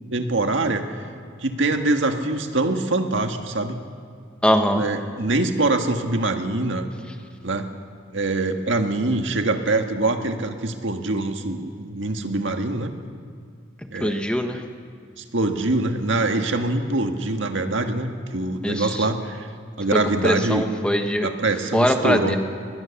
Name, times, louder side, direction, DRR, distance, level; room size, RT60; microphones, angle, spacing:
voice 1, 0.1-1.1 1.4-3.8 4.7-6.9 7.4-7.7 8.1-12.9 13.9-14.3 15.2-19.5 19.8-20.7 21.2-22.4, right 2 dB, 75° right, 5 dB, 1.7 m, -24 dB
voice 2, 4.4-4.8 14.0-14.6 18.6-18.9 20.2-21.3 21.7-22.4, equal, 5° left, 5 dB, 1.2 m, -21 dB
23.0 x 20.5 x 7.2 m, 2.2 s
head